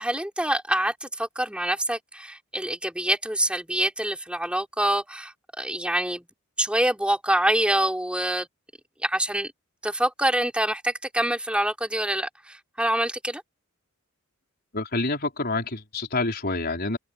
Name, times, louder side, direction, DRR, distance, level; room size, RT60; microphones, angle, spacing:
voice 1, 0.0-6.3 6.6-8.5 9.0-9.5 9.8-13.4, right 1 dB, 5° right, 3.5 m, -26 dB
voice 2, 14.7-17.0, left 3 dB, 50° left, 4.9 m, -27 dB
head